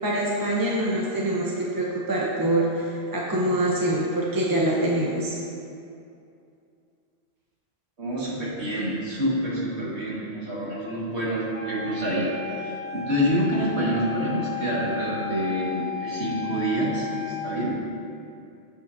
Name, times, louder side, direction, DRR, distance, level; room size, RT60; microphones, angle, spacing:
voice 1, 0.0-5.4, right 1 dB, 20° right, -4 dB, 0.7 m, -25 dB
voice 2, 8.0-12.3 12.6-17.8, equal, 65° right, -6 dB, 2.1 m, -27 dB
Wind instrument woodwind instrument, 11.5-17.5, left 6 dB, 10° left, 1.4 m, -34 dB
15.5 x 5.3 x 2.7 m, 2.6 s
omnidirectional pair, 1.2 m